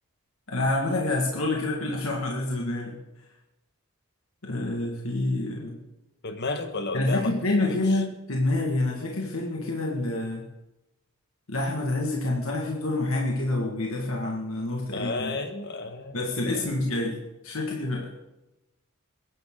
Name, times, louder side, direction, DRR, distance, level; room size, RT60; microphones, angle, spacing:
voice 1, 0.5-3.0 4.4-5.7 6.9-10.4 11.5-15.3 16.1-17.2 17.4-18.1, left 2 dB, 70° left, -1 dB, 1.9 m, -27 dB
voice 2, 6.2-7.3 7.6-8.0 14.9-16.8, left 3 dB, 55° left, 7 dB, 1.5 m, -33 dB
21.5 x 11.0 x 3.9 m, 0.96 s
head